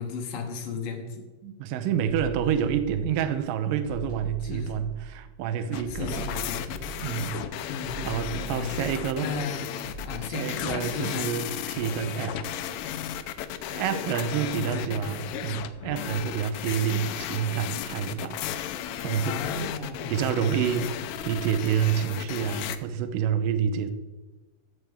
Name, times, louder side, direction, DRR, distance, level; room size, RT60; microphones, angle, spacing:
voice 1, 0.0-1.3 4.5-4.7 5.9-6.8 7.7-8.9 9.2-9.7 10.0-11.3 14.2-15.1 19.3-20.1, left 4 dB, 70° left, 3 dB, 2.7 m, -35 dB
voice 2, 1.4-6.3 7.0-7.4 8.0-9.3 10.3-12.4 13.6-18.4 19.0-19.4 20.1-23.9, right 8 dB, 85° right, 10 dB, 2.0 m, -28 dB
sound 1, 2.1-3.4 3.8-5.4 5.8-7.4 7.8-9.4 9.8-10.1, right 3 dB, 35° left, 4.5 m, -40 dB
sound 2, 5.7-22.8, left 10 dB, 85° left, 1.9 m, -34 dB
14.5 x 7.0 x 3.5 m, 1.2 s
omnidirectional pair, 4.5 m